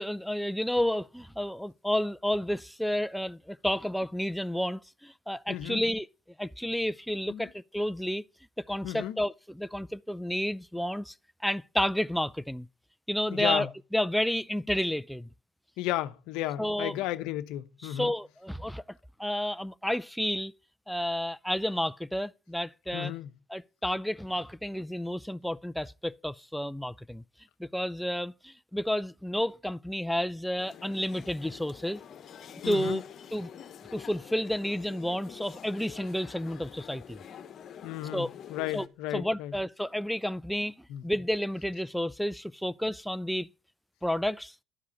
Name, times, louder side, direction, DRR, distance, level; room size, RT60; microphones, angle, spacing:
voice 1, 0.0-6.1 6.4-8.2 8.7-11.1 11.4-12.7 13.1-15.3 16.6-16.9 17.8-18.8 19.2-20.5 20.9-23.1 23.5-27.2 27.6-32.0 32.6-33.0 33.3-33.5 33.9-37.2 38.1-38.3 38.7-38.9 39.1-40.7 41.0-43.5 44.0-44.5, equal, ahead, 0.4 m, -31 dB
voice 2, 5.5-5.8 7.3-7.5 8.8-9.2 13.3-13.7 15.8-18.1 22.9-23.3 32.6-33.0 37.8-38.2 38.5-39.5 40.9-41.0, left 14 dB, 75° left, 0.8 m, -33 dB
sound 1, 30.6-38.9, left 8 dB, 50° left, 1.2 m, -47 dB
11.5 x 4.9 x 8.3 m
hypercardioid pair, 70°, 0 cm